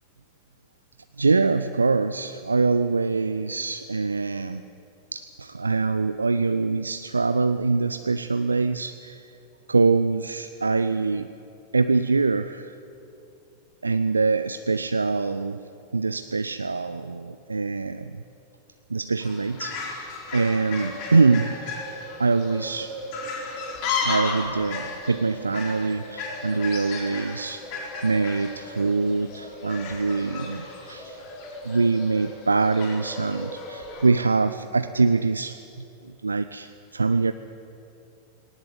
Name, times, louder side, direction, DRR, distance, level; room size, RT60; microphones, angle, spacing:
voice 1, 1.2-4.6 5.1-9.3 9.7-11.3 11.7-12.8 13.8-15.6 15.9-18.2 18.9-21.6 22.2-23.0 24.0-27.6 28.0-31.2 31.6-35.6 36.0-37.3, right 4 dB, 80° right, 11 dB, 0.5 m, -24 dB
Fowl, 19.2-34.1, left 3 dB, 45° left, 4.4 m, -34 dB
19.0 x 18.5 x 8.4 m, 2.8 s
figure-of-eight pair, 90°, 0 cm